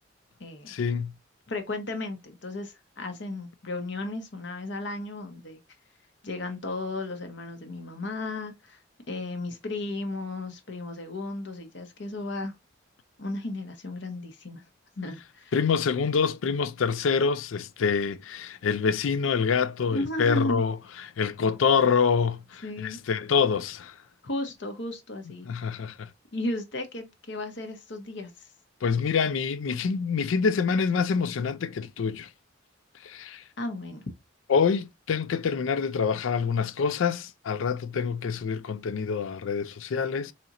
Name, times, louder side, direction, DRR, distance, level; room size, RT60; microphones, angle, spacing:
voice 1, 0.7-1.1 15.5-20.7 21.0-24.0 25.4-26.1 28.8-32.3 33.0-33.4 34.5-40.3, left 6 dB, 80° left, 0.4 m, -26 dB
voice 2, 1.5-5.6 6.2-8.8 9.1-12.5 13.2-14.6 15.0-15.5 19.9-20.6 22.6-23.0 24.2-25.5 26.3-28.5 33.6-34.1, left 2 dB, 60° left, 0.9 m, -34 dB
4.2 x 2.9 x 2.5 m
head